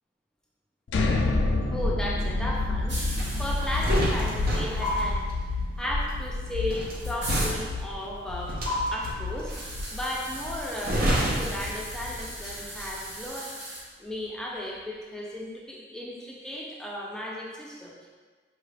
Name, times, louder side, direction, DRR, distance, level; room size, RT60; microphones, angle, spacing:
sound 1, 0.9-12.7, left 2 dB, 85° left, 0.4 m, -30 dB
voice 1, 1.7-3.0 3.4-5.3 5.8-8.6 8.9-9.5 9.9-13.5 14.0-18.1, left 1 dB, 5° left, -4 dB, 0.5 m, -35 dB
sound 2, 2.9-4.6 4.8-4.9 6.2-6.3 6.6-7.5 8.6-8.7 9.5-13.8, right 1 dB, 70° right, 1.2 m, -38 dB
sound 3, 3.1-12.5 12.7-13.0, equal, 55° right, 0.6 m, -31 dB
4.7 x 2.4 x 3.2 m, 1.4 s
head